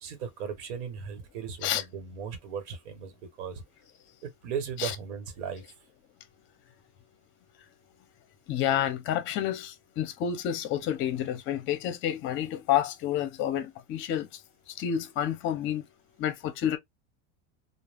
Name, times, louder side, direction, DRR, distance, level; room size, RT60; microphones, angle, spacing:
voice 1, 0.0-3.6 4.2-5.6, right 7 dB, 80° right, 1.1 m, -37 dB
voice 2, 8.5-14.3 14.8-15.8 16.2-16.8, left 10 dB, 35° left, 0.6 m, -29 dB
2.3 x 2.1 x 3.3 m
supercardioid pair, 140°, 35 cm